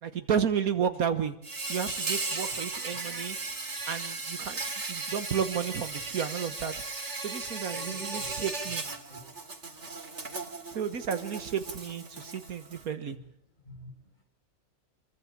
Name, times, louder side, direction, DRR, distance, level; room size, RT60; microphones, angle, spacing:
voice 1, 0.0-1.3 1.7-3.4 3.9-4.6 4.9-6.7 7.2-8.8 10.7-13.2, right 7 dB, 75° right, 9 dB, 1.7 m, -32 dB
Insect, 1.4-12.8, right 3 dB, 50° right, 3.0 m, -36 dB
voice 2, 7.7-9.4 9.8-9.9 13.1-13.3 13.6-14.1, right 1 dB, 30° left, 4 dB, 6.7 m, -46 dB
26.5 x 23.5 x 7.4 m, 0.64 s
omnidirectional pair, 1.5 m